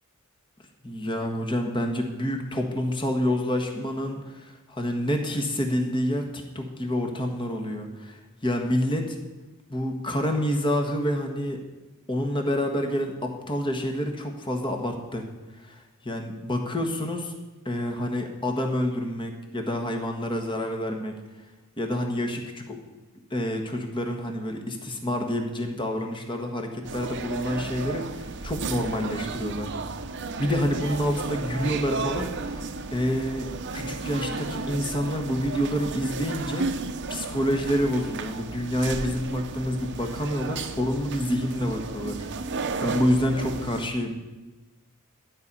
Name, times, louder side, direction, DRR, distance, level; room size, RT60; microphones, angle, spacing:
voice 1, 0.8-9.2 9.7-11.6 12.1-15.2 15.6-17.3 17.6-21.1 21.8-22.8 23.3-29.7 30.4-36.7 37.1-42.2 42.8-44.1, equal, 25° left, 4 dB, 1.5 m, -28 dB
sound 1, 26.8-43.9, right 3 dB, 55° right, 0.8 m, -34 dB
13.0 x 5.5 x 8.4 m, 1.1 s
head